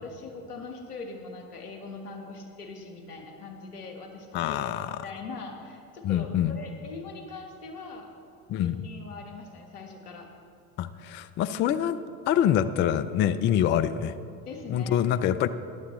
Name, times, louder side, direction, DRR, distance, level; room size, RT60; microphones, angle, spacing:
voice 1, 0.0-8.1 8.6-10.3 11.5-11.6 14.4-15.0, left 3 dB, 85° left, 4 dB, 1.5 m, -41 dB
voice 2, 4.3-5.0 6.0-6.6 8.5-8.8 10.8-12.0 12.3-14.1 14.7-15.5, left 10 dB, 30° left, 13 dB, 0.3 m, -25 dB
14.5 x 11.0 x 3.1 m, 2.7 s
hypercardioid pair, 75°, 45 cm